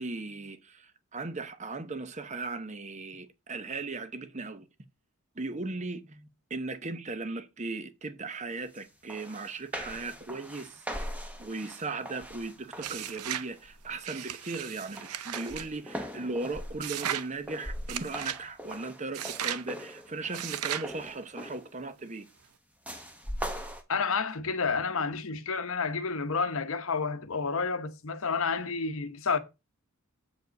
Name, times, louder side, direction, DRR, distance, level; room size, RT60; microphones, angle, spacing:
voice 1, 0.0-4.7 5.4-10.8 11.4-22.3, right 3 dB, 30° right, 0.8 m, -37 dB
sound 1, 8.7-8.8 9.1-13.1 13.6-13.9 14.3-21.7 22.8-23.8, equal, 5° right, 1.0 m, -41 dB
sound 2, 12.8-13.5 14.0-15.7 16.8-17.3 17.9-18.4 19.1-19.7 20.3-20.9, right 10 dB, 85° right, 0.6 m, -36 dB
voice 2, 23.9-29.4, left 5 dB, 65° left, 0.9 m, -30 dB
8.0 x 5.0 x 5.2 m
head